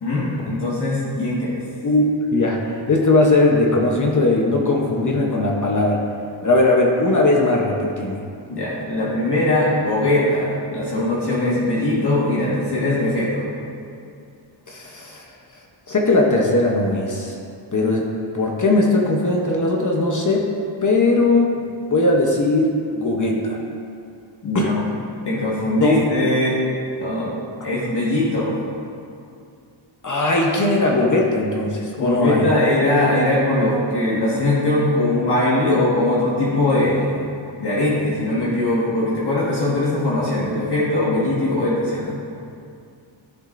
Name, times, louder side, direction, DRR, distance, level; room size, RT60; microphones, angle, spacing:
voice 1, 0.0-1.6 8.5-13.5 24.4-24.8 25.2-26.6 27.0-27.3 27.6-28.6 32.0-37.2 37.6-42.2, left 1 dB, 55° left, -7 dB, 1.6 m, -21 dB
voice 2, 2.3-6.0 6.4-8.2 14.7-15.2 15.9-17.3 17.7-18.1 18.3-20.5 20.8-21.5 21.9-23.6 24.5-24.7 25.8-26.0 30.0-32.4, left 2 dB, 40° left, -1 dB, 0.9 m, -19 dB
13.0 x 7.1 x 2.6 m, 2.4 s
wide cardioid pair, 135°, 48 cm